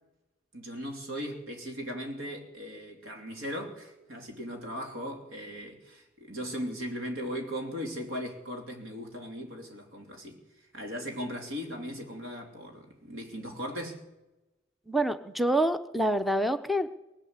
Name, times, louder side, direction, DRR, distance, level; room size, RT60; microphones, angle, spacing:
voice 1, 0.5-14.0, equal, 90° right, 3.0 m, -38 dB
voice 2, 14.9-16.9, right 1 dB, ahead, 0.6 m, -26 dB
20.5 x 8.5 x 8.1 m
head